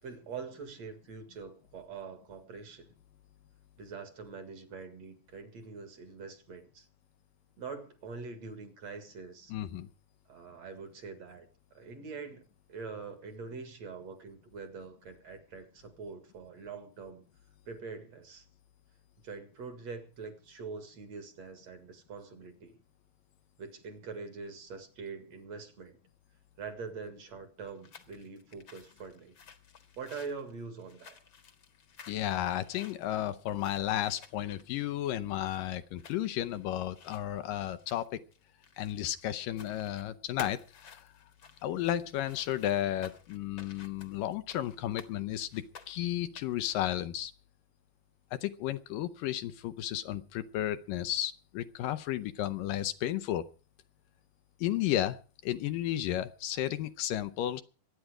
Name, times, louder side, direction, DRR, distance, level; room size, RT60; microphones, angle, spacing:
voice 1, 0.0-2.9 3.8-6.9 7.6-9.5 10.3-11.5 11.7-12.4 12.7-17.2 17.7-18.5 19.2-22.8 23.6-26.0 26.6-29.3 30.0-31.2, right 4 dB, 55° right, 9 dB, 2.8 m, -44 dB
voice 2, 9.5-9.9 32.1-38.2 38.8-41.1 41.6-47.3 48.3-53.5 54.6-55.2 55.4-57.6, left 12 dB, 75° left, 11 dB, 2.4 m, -33 dB
sound 1, 27.6-39.2 39.5-40.1 40.4-45.1 45.5-46.7, left 6 dB, 45° left, 1.8 m, -53 dB
24.0 x 9.5 x 4.9 m, 0.36 s
omnidirectional pair, 4.1 m